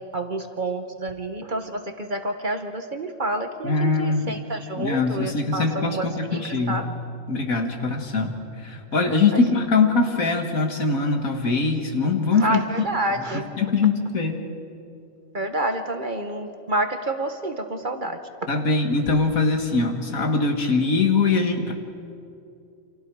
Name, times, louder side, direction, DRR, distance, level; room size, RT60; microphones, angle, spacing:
voice 1, 0.1-6.9 9.3-9.4 12.4-13.4 15.3-18.2, right 2 dB, 40° right, 6 dB, 1.2 m, -28 dB
voice 2, 3.6-4.4 4.8-6.8 7.3-12.6 13.2-14.5 18.5-21.7, left 4 dB, 75° left, 4 dB, 2.3 m, -22 dB
28.5 x 26.5 x 4.8 m, 2.6 s
omnidirectional pair, 1.5 m